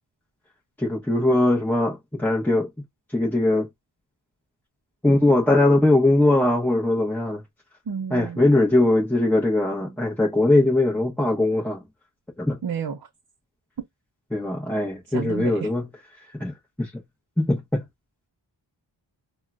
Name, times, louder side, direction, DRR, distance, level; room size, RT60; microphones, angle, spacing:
voice 1, 0.8-2.7 3.1-3.7 5.0-7.4 8.1-11.8 12.4-12.6 14.3-15.8 16.4-16.5 16.8-16.9 17.4-17.8, left 2 dB, 5° left, 0.9 m, -20 dB
voice 2, 7.9-8.4 12.6-13.1 15.1-15.7, right 7 dB, 55° right, 0.6 m, -31 dB
3.5 x 2.2 x 2.4 m
wide cardioid pair, 85°, 45 cm